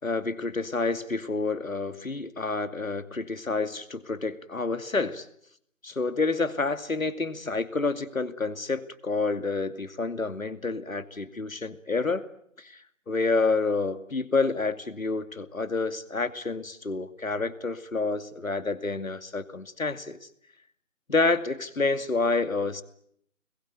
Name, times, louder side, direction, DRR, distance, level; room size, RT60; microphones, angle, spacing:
voice 1, 0.0-5.3 5.8-12.3 12.6-20.2 21.1-22.8, left 3 dB, 70° left, 11 dB, 2.6 m, -28 dB
26.0 x 22.0 x 9.2 m, 0.70 s
figure-of-eight pair, 165°, 41 cm